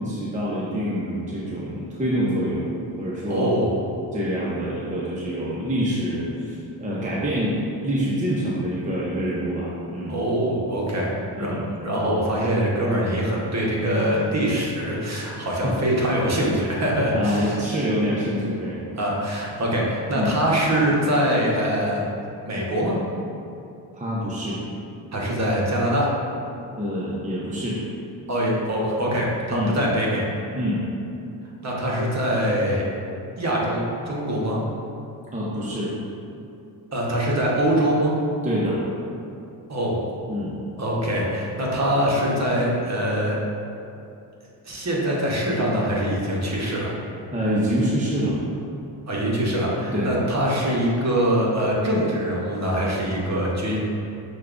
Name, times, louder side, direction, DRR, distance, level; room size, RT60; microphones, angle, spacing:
voice 1, 0.0-2.7 3.0-3.5 4.1-7.6 7.8-10.2 11.4-11.7 15.4-15.7 17.1-18.8 20.1-20.3 23.9-24.6 26.8-27.8 29.5-29.8 30.5-30.8 35.3-36.0 38.4-38.8 40.3-40.5 47.3-48.4 49.9-50.2, equal, 15° right, -6 dB, 0.6 m, -26 dB
voice 2, 3.2-3.8 10.1-17.6 19.0-22.1 22.4-23.0 25.1-26.1 28.3-30.2 31.6-32.8 33.4-34.6 36.9-38.1 39.7-40.0 40.8-43.4 44.6-46.9 49.1-53.8, equal, 35° right, -4 dB, 1.0 m, -23 dB
6.3 x 2.3 x 2.5 m, 2.7 s
cardioid pair, 60°, 44 cm